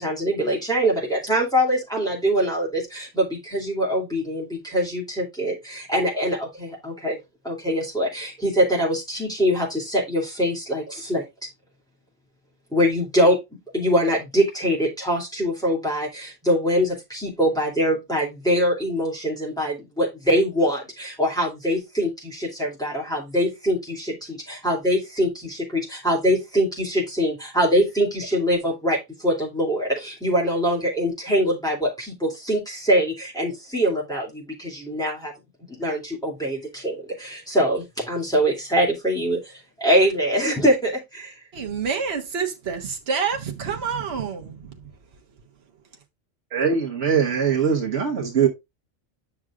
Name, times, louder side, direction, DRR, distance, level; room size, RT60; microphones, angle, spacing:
voice 1, 0.0-7.2 7.4-11.3 12.7-13.4 13.7-35.3 35.7-41.3, equal, 5° left, 2.6 m, -23 dB
voice 2, 41.5-44.9, right 6 dB, 60° right, 1.3 m, -28 dB
voice 3, 46.5-48.5, right 7 dB, 75° right, 1.4 m, -21 dB
8.6 x 6.2 x 2.4 m
omnidirectional pair, 1.2 m